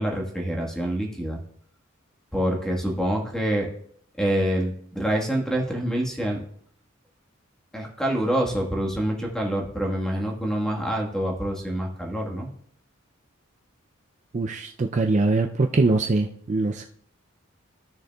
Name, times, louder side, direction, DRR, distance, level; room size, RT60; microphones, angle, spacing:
voice 1, 0.0-1.4 2.3-3.7 4.2-6.4 7.7-12.5, right 1 dB, 5° left, 0 dB, 1.5 m, -26 dB
voice 2, 14.3-16.8, right 3 dB, 35° right, 4 dB, 0.4 m, -23 dB
16.0 x 6.4 x 2.3 m, 0.64 s
head